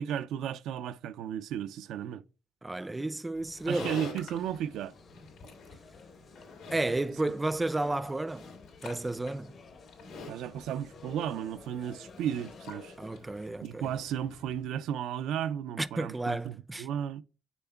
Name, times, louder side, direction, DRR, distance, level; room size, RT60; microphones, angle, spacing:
voice 1, 0.0-2.2 3.7-4.9 10.3-13.0 13.6-17.2, right 9 dB, 85° right, 0.3 m, -34 dB
voice 2, 2.6-4.0 6.7-8.5 8.8-9.5 13.0-13.9 15.8-16.9, right 2 dB, 15° right, 0.4 m, -32 dB
Livestock farm animals working animals, 3.3-14.6, left 4 dB, 85° left, 3.0 m, -48 dB
sound 1, 4.2-13.3, left 4 dB, 55° left, 1.0 m, -53 dB
7.0 x 6.9 x 2.3 m
cardioid pair, 90°, 0 cm